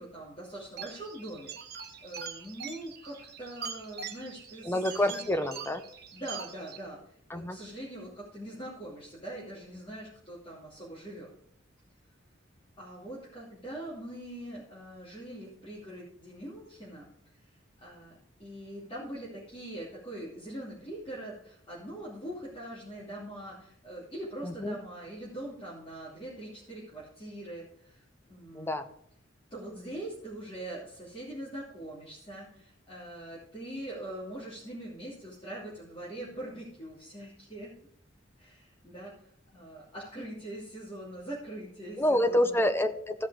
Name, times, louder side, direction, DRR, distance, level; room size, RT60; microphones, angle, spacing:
voice 1, 0.0-5.4 6.1-11.3 12.8-17.1 17.8-28.9 29.5-37.7 38.4-39.1 39.5-42.6, right 1 dB, 25° left, -8 dB, 3.0 m, -42 dB
sound 1, 0.8-6.8, right 6 dB, 55° right, 1.3 m, -43 dB
voice 2, 4.6-5.8 7.3-7.6 24.4-24.8 28.5-28.9 42.0-43.3, left 1 dB, 10° left, 8 dB, 0.7 m, -28 dB
15.0 x 5.6 x 4.9 m, 0.67 s
head